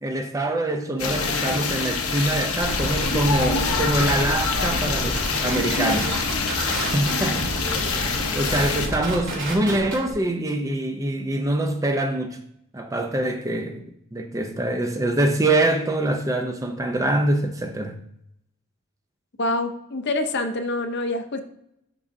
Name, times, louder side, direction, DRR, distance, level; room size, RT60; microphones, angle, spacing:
voice 1, 0.0-6.1 6.8-7.8 8.3-12.4 12.7-18.0, right 1 dB, 15° right, 0.4 m, -24 dB
sound 1, 1.0-8.9, left 4 dB, 85° left, 0.9 m, -25 dB
sound 2, 2.6-10.1, right 1 dB, 60° right, 2.2 m, -30 dB
voice 2, 19.4-21.4, left 2 dB, 50° left, 0.6 m, -26 dB
11.0 x 3.7 x 2.6 m
head